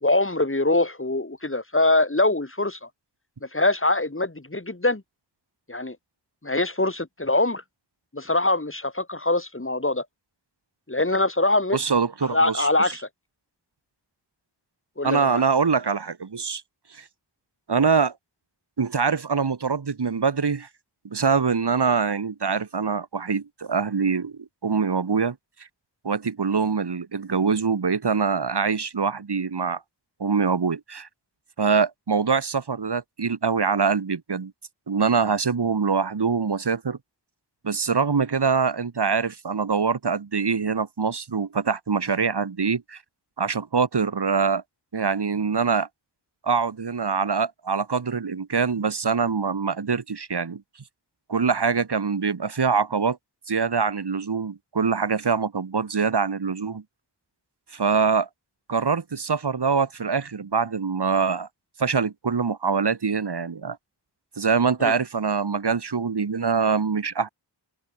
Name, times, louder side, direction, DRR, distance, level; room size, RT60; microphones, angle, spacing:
voice 1, 0.0-2.8 3.5-5.0 5.7-6.0 6.4-7.6 8.1-10.1 10.9-11.8 12.3-13.0 15.0-15.4 64.8-64.9, left 2 dB, 30° left, 3.8 m, -23 dB
voice 2, 11.7-12.7 15.0-16.6 16.9-17.0 17.7-18.1 18.8-20.7 21.0-25.4 26.0-29.8 30.2-31.1 31.6-34.5 34.9-37.0 37.6-43.0 43.4-44.6 44.9-45.9 46.4-50.6 51.3-53.2 53.5-56.8 57.7-58.3 58.7-61.5 61.8-63.8 64.4-67.3, right 5 dB, 65° right, 1.5 m, -24 dB
open air
wide cardioid pair, 60°, 44 cm